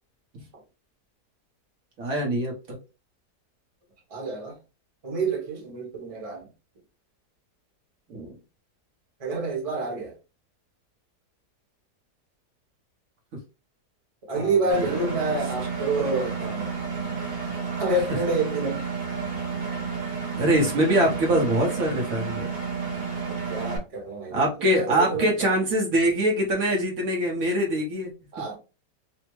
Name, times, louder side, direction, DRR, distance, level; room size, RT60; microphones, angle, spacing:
voice 1, 2.0-2.8 8.1-8.4 14.3-15.1 20.4-22.5 24.3-28.1, right 1 dB, 60° right, 1.2 m, -24 dB
voice 2, 4.1-4.6 5.0-6.4 9.2-10.1 14.3-16.7 17.8-18.8 23.3-25.4 28.3-28.6, right 2 dB, 25° right, 0.9 m, -28 dB
Engine, 14.7-23.8, right 5 dB, 75° right, 1.6 m, -31 dB
3.3 x 2.0 x 3.0 m
omnidirectional pair, 1.7 m